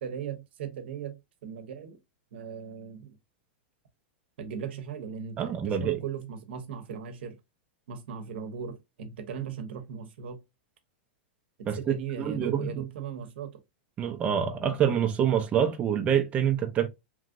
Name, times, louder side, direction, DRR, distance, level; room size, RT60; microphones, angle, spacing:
voice 1, 0.0-2.0 2.3-3.2 4.4-7.4 7.9-10.4 11.8-13.6, right 7 dB, 70° right, 0.8 m, -38 dB
voice 2, 5.4-6.0 11.7-11.8 12.2-12.7 14.0-16.9, right 8 dB, 20° right, 0.4 m, -26 dB
3.0 x 2.5 x 2.4 m
hypercardioid pair, 140°, 6 cm